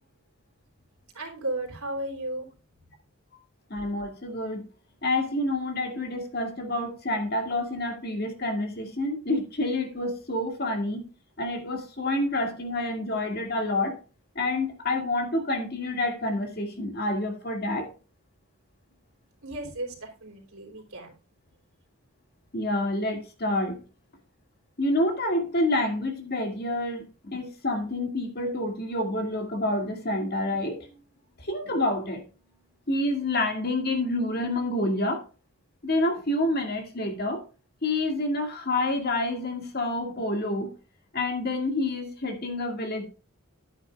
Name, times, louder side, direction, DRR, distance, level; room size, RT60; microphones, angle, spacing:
voice 1, 1.1-2.5 19.4-21.1, right 1 dB, 90° right, 2 dB, 3.4 m, -34 dB
voice 2, 3.7-4.6 5.0-11.0 11.4-14.0 14.4-17.9 22.5-23.8 24.8-30.9 31.4-32.2 32.9-35.2 35.8-37.4 37.8-40.7 41.1-43.0, left 1 dB, 45° left, 4 dB, 2.1 m, -28 dB
11.0 x 9.0 x 2.4 m, 0.33 s
head